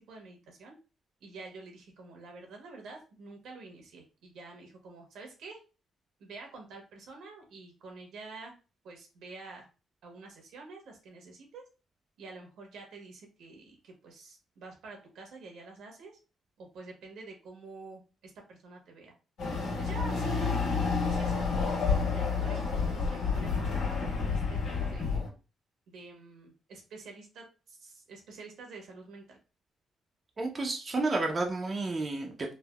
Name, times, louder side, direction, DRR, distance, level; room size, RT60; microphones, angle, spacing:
voice 1, 0.1-0.7 1.2-5.6 6.2-8.5 8.8-9.7 10.0-11.6 12.2-16.1 16.6-19.1 19.8-20.6 21.0-23.9 24.1-24.6 24.9-25.2 25.9-29.4, right 3 dB, 80° right, 1 dB, 1.0 m, -48 dB
Chatter / Car passing by / Motorcycle, 19.4-25.3, left 4 dB, 85° left, 1.3 m, -29 dB
voice 2, 30.4-32.5, right 3 dB, 35° right, 2 dB, 0.4 m, -31 dB
3.3 x 2.1 x 2.2 m, 0.33 s
cardioid pair, 90°, 0 cm